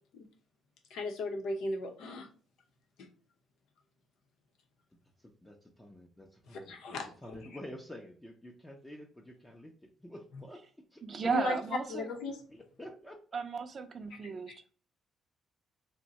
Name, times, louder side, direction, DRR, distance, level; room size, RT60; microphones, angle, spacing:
voice 1, 0.9-2.3 3.0-3.1 6.5-7.1 11.2-11.6 11.9-12.4 14.1-14.2, left 2 dB, 85° left, 0.8 m, -36 dB
voice 2, 5.2-6.8 7.2-11.3 12.5-13.4, left 1 dB, 10° left, 0.5 m, -49 dB
voice 3, 11.0-12.1 13.3-14.5, right 5 dB, 45° right, 0.5 m, -34 dB
2.6 x 2.1 x 3.9 m
cardioid pair, 90°, 0 cm